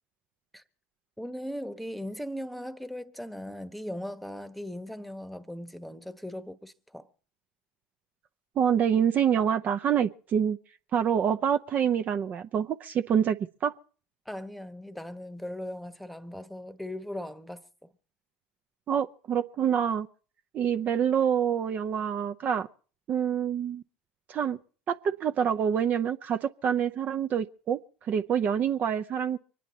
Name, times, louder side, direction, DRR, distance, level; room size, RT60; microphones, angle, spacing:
voice 1, 1.2-7.1 14.2-17.9, left 1 dB, ahead, 1.1 m, -38 dB
voice 2, 8.6-10.6 10.9-13.4 13.6-13.7 18.9-20.1 20.5-22.7 23.1-23.8 24.3-24.6 24.9-27.8 28.1-29.4, right 8 dB, 40° right, 0.7 m, -26 dB
25.0 x 10.0 x 4.2 m
hypercardioid pair, 80°, 4 cm